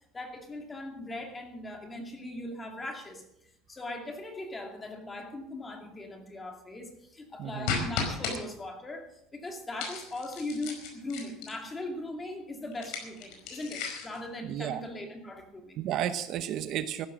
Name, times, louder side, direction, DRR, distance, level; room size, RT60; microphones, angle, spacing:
voice 1, 0.1-3.2 3.7-15.8, left 1 dB, 15° left, 3 dB, 2.4 m, -39 dB
voice 2, 7.4-7.9 14.4-14.8 15.8-17.1, right 10 dB, 45° right, 11 dB, 0.8 m, -32 dB
sound 1, 7.7-8.4 9.8-11.7 12.7-14.2, left 6 dB, 65° left, 4.9 m, -35 dB
14.5 x 12.0 x 6.3 m, 0.80 s
cardioid pair, 160°, 0 cm